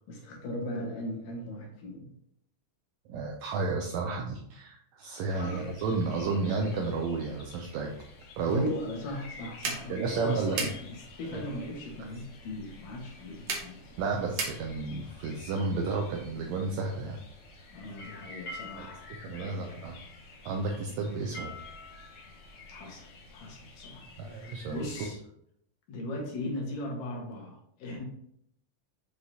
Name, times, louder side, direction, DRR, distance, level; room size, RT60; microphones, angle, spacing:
voice 1, 0.1-2.1 5.3-5.7 8.5-13.8 17.7-19.8 22.7-25.2 25.9-28.0, left 1 dB, 85° left, -1 dB, 3.1 m, -38 dB
voice 2, 3.1-7.9 8.4-8.7 9.9-10.7 11.3-11.4 14.0-17.2 18.8-18.9 19.2-20.0 20.5-21.5 24.2-25.1, right 4 dB, 80° right, 1 dB, 1.7 m, -32 dB
sound 1, 5.3-25.1, left 3 dB, 65° left, 2.5 m, -50 dB
sound 2, 8.9-15.0, right 4 dB, 60° right, 1.8 m, -39 dB
sound 3, 18.0-23.5, left 2 dB, 20° left, 1.2 m, -47 dB
7.8 x 4.8 x 2.8 m, 0.72 s
omnidirectional pair, 3.7 m